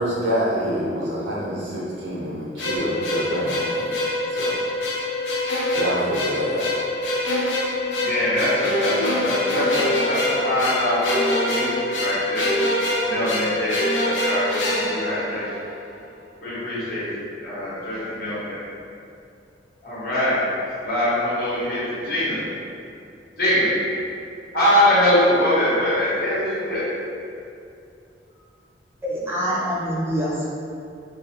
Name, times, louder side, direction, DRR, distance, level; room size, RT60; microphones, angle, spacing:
voice 1, 0.0-4.0 4.3-4.6 5.7-6.7, equal, 80° right, -6 dB, 0.7 m, -26 dB
sound 1, 2.6-15.8, left 1 dB, 85° left, 0.4 m, -24 dB
voice 2, 8.0-12.5 13.0-15.4 16.4-17.0 17.4-18.6 19.8-20.3 20.8-22.4 23.4-23.7 24.5-26.9, left 1 dB, 55° left, -10 dB, 0.8 m, -23 dB
voice 3, 29.0-30.5, equal, 15° right, -7 dB, 0.4 m, -25 dB
2.3 x 2.2 x 2.7 m, 2.5 s
head